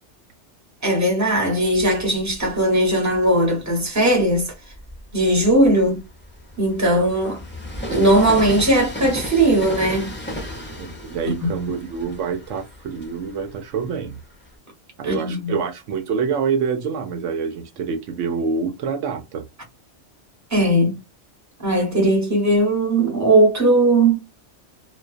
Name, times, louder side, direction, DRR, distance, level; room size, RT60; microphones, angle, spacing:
voice 1, 0.8-4.5 5.1-6.0 6.6-7.4 7.9-10.1 11.2-11.5 15.0-15.5 20.5-21.0 21.6-24.2, right 1 dB, 15° right, 1.0 m, -18 dB
Train, 1.7-3.3 3.9-14.5, equal, 15° left, 0.5 m, -35 dB
voice 2, 10.8-14.2 15.0-19.4, right 6 dB, 80° right, 0.9 m, -26 dB
2.3 x 2.2 x 2.4 m
omnidirectional pair, 1.2 m